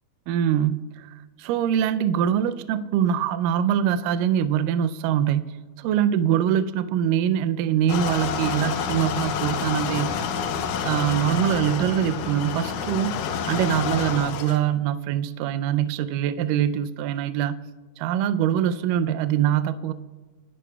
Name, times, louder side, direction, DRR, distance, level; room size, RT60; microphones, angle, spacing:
voice 1, 0.3-1.1 1.4-5.6 5.8-10.4 10.8-13.2 13.5-17.6 18.0-19.9, right 10 dB, 90° right, 11 dB, 1.9 m, -23 dB
sound 1, 7.9-14.6, left 6 dB, 75° left, 2.2 m, -28 dB
28.5 x 11.5 x 2.3 m, 1.3 s
omnidirectional pair, 4.4 m